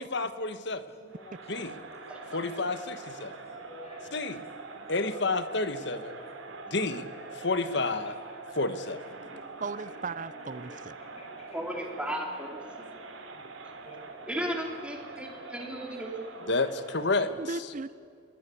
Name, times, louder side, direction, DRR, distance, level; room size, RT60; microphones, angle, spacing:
voice 1, 0.0-0.8 1.5-1.7 2.3-3.3 4.1-4.4 4.9-6.2 6.7-8.2 8.5-9.0 16.5-17.3, left 3 dB, 60° left, 12 dB, 1.4 m, -30 dB
voice 2, 0.9-1.7 2.3-2.5 3.3-3.4 3.7-4.1 4.7-5.0 6.1-7.0 7.5-7.6 8.0-8.1 10.7-10.8 11.2-11.9 13.8-14.2 15.2-15.3, left 1 dB, 35° left, 1 dB, 6.7 m, -51 dB
Crowd, 1.1-17.3, right 3 dB, 90° right, 3.4 m, -44 dB
voice 3, 2.1-2.4 11.5-13.0 14.3-16.2, equal, 5° right, 1 dB, 3.4 m, -35 dB
voice 4, 9.6-11.0 17.4-18.0, right 3 dB, 40° right, 16 dB, 0.7 m, -37 dB
27.5 x 20.5 x 8.5 m, 2.3 s
head